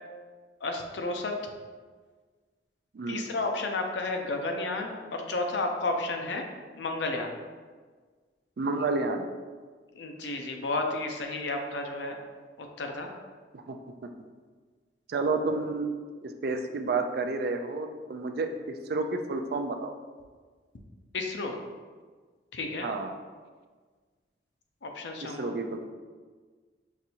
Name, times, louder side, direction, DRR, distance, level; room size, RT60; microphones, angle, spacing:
voice 1, 0.6-1.4 3.1-6.4 6.7-7.3 9.9-12.2 12.6-13.1 21.1-21.6 22.5-22.9 24.8-25.6, left 2 dB, 80° left, 3 dB, 0.5 m, -32 dB
voice 2, 2.9-3.3 8.6-9.3 13.5-13.8 15.1-15.9 16.2-18.5 18.9-19.9 22.8-23.2 25.2-25.9, right 3 dB, 60° right, 6 dB, 0.4 m, -30 dB
5.9 x 2.6 x 2.8 m, 1.5 s
head